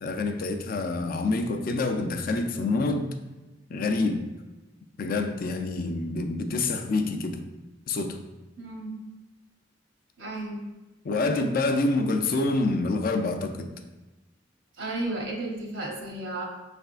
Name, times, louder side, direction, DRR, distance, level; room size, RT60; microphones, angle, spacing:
voice 1, 0.0-3.1 3.7-4.3 5.0-7.4 7.9-8.2 11.0-13.7, left 3 dB, 50° left, 6 dB, 0.4 m, -27 dB
voice 2, 8.6-8.9 10.2-10.6 14.8-16.5, right 2 dB, 75° right, -1 dB, 0.9 m, -33 dB
5.5 x 3.4 x 2.4 m, 1.1 s
head